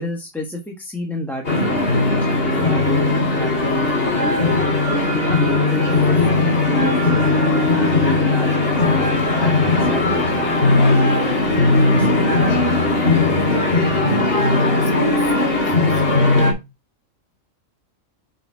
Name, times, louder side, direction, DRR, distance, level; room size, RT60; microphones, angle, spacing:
voice 1, 0.0-4.5 4.8-7.1 7.5-11.4 11.9-12.3 12.7-12.9, left 1 dB, ahead, 1.0 m, -30 dB
sound 1, 1.4-16.5, left 2 dB, 45° left, 2.3 m, -18 dB
voice 2, 14.0-16.3, left 2 dB, 20° left, 4.7 m, -32 dB
6.6 x 4.3 x 3.4 m
omnidirectional pair, 1.4 m